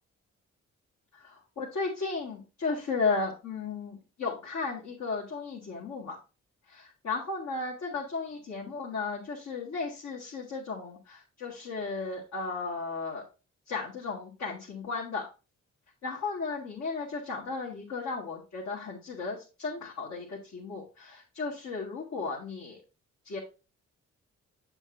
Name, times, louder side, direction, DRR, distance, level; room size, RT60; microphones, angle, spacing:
voice 1, 1.1-6.2 6.7-13.3 13.7-15.3 16.0-22.8 23.2-23.4, left 4 dB, 65° left, -4 dB, 1.8 m, -35 dB
7.1 x 6.9 x 2.6 m, 0.31 s
cardioid pair, 70°, 30 cm